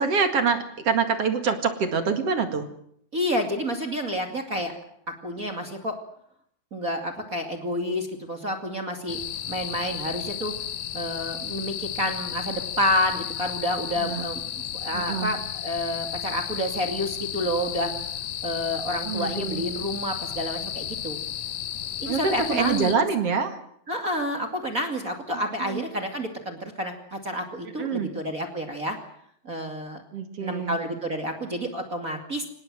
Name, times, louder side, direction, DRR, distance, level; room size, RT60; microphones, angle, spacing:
voice 1, 0.0-2.7 14.0-14.3 14.9-15.3 19.0-19.6 22.0-23.6 25.6-25.9 27.8-28.1 30.1-30.8, right 5 dB, 45° right, 7 dB, 2.2 m, -25 dB
voice 2, 3.1-4.8 5.2-5.9 6.7-9.2 9.5-10.5 10.9-17.9 18.4-21.2 22.0-23.0 23.9-29.0 29.4-30.0 30.4-32.4, equal, 30° right, 3 dB, 1.8 m, -29 dB
sound 1, 9.1-22.9, left 10 dB, 85° left, 1.5 m, -33 dB
25.5 x 19.0 x 7.8 m, 0.69 s
omnidirectional pair, 5.0 m